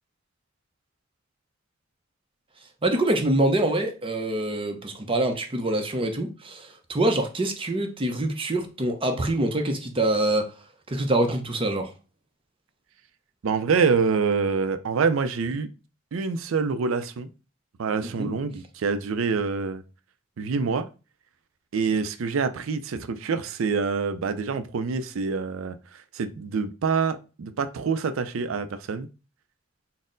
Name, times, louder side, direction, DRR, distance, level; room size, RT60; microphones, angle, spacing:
voice 1, 2.8-10.5 10.9-11.9 18.0-18.3, right 1 dB, 25° right, 0.6 m, -25 dB
voice 2, 13.4-15.7 16.1-17.3 17.8-19.8 20.4-20.9 21.7-29.1, right 5 dB, 85° right, 0.4 m, -26 dB
4.1 x 2.0 x 3.8 m
head